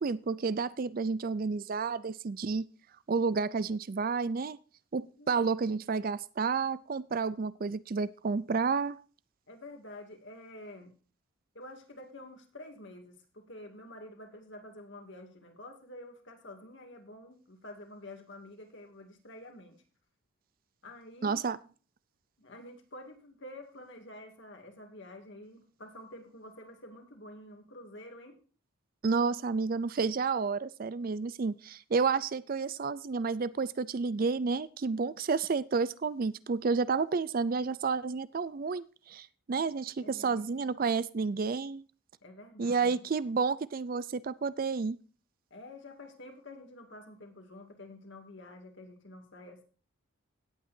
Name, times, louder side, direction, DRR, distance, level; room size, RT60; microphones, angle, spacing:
voice 1, 0.0-2.7 3.1-4.6 4.9-9.0 21.2-21.6 29.0-41.8 42.6-45.0, right 4 dB, 40° right, 18 dB, 0.4 m, -30 dB
voice 2, 9.5-10.9 11.5-19.8 20.8-21.4 22.4-28.4 40.0-40.7 42.2-43.1 45.5-49.6, left 1 dB, 55° left, 5 dB, 2.4 m, -49 dB
17.5 x 8.6 x 2.7 m, 0.37 s
head